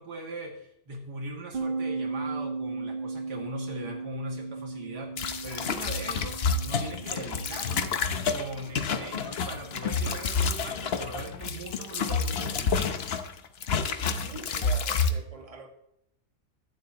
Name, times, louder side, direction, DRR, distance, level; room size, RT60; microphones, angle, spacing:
voice 1, 0.0-8.0 8.3-13.0, right 1 dB, 85° right, 2 dB, 2.5 m, -40 dB
sound 1, 1.5-11.0, right 3 dB, 40° right, 1.0 m, -37 dB
sound 2, 5.2-13.3 13.6-15.1, left 5 dB, 50° left, 0.8 m, -29 dB
voice 2, 13.8-15.7, right 3 dB, 20° right, 2 dB, 1.6 m, -44 dB
22.5 x 7.9 x 2.9 m, 0.77 s
omnidirectional pair, 1.7 m